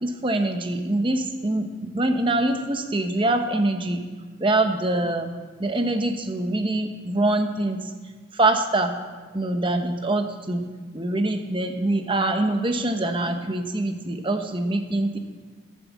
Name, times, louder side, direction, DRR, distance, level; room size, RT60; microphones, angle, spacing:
voice 1, 0.0-4.0 4.4-5.3 5.6-7.9 8.3-8.9 9.3-10.6 10.9-15.2, right 2 dB, 25° right, 6 dB, 1.0 m, -24 dB
13.0 x 7.6 x 7.5 m, 1.4 s
head